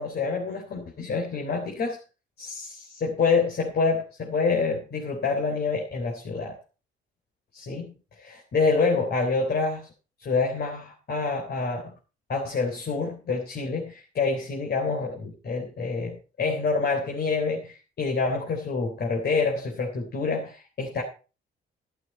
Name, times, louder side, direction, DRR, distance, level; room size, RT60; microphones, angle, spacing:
voice 1, 0.0-2.0 2.4-6.5 7.5-9.9 10.2-11.8 12.3-21.0, left 4 dB, 55° left, 1 dB, 3.4 m, -27 dB
13.0 x 11.5 x 4.3 m, 0.34 s
cardioid pair, 90°, 20 cm